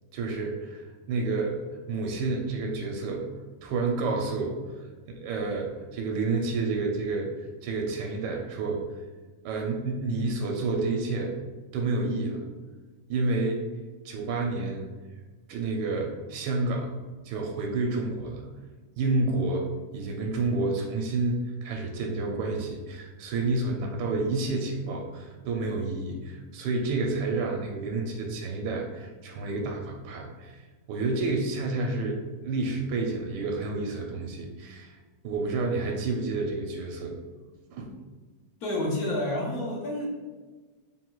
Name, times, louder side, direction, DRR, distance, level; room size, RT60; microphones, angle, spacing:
voice 1, 0.1-1.6 1.9-3.2 3.6-4.6 5.1-8.8 9.4-11.3 11.7-12.4 13.1-13.6 14.0-14.8 15.5-16.9 17.2-18.4 19.0-19.7 19.9-30.6 30.9-32.2 32.4-35.0 35.2-37.1 37.7-37.9, right 3 dB, 85° right, 1 dB, 1.2 m, -29 dB
voice 2, 38.6-40.1, left 1 dB, 65° left, -2 dB, 1.3 m, -29 dB
3.5 x 2.3 x 4.5 m, 1.3 s
omnidirectional pair, 1.8 m